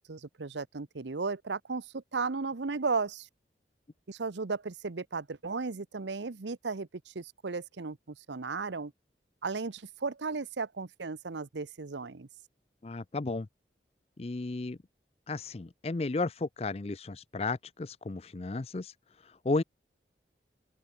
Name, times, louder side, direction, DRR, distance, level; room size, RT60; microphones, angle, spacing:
voice 1, 0.1-3.3 4.1-8.9 9.4-12.3, right 4 dB, 85° right, 0.8 m, -35 dB
voice 2, 12.8-13.5 14.2-14.8 15.3-18.9 19.2-19.6, left 3 dB, 35° left, 0.5 m, -33 dB
open air
head